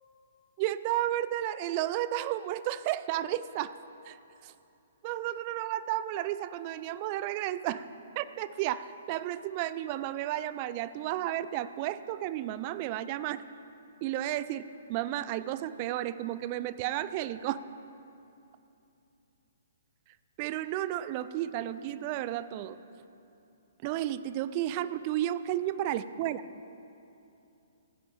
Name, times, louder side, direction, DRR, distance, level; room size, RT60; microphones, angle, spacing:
voice 1, 0.6-3.8 4.0-4.2 4.4-4.5 5.0-7.9 8.2-13.4 14.0-17.6 20.4-22.8 23.8-26.5, right 13 dB, 35° right, 15 dB, 0.4 m, -32 dB
15.5 x 9.6 x 3.6 m, 2.7 s
figure-of-eight pair, 125°, 0 cm